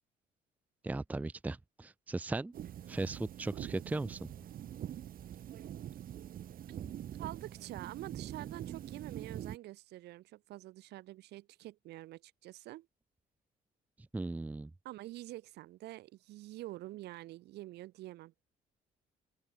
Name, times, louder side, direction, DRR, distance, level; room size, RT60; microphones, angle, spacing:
voice 1, 0.8-2.5 2.9-4.3 14.1-14.7, right 2 dB, 10° right, 0.5 m, -37 dB
sound 1, 2.5-9.6, right 11 dB, 55° right, 4.9 m, -44 dB
voice 2, 7.2-12.9 14.8-18.3, right 16 dB, 80° right, 3.8 m, -47 dB
open air
cardioid pair, 110°, 17 cm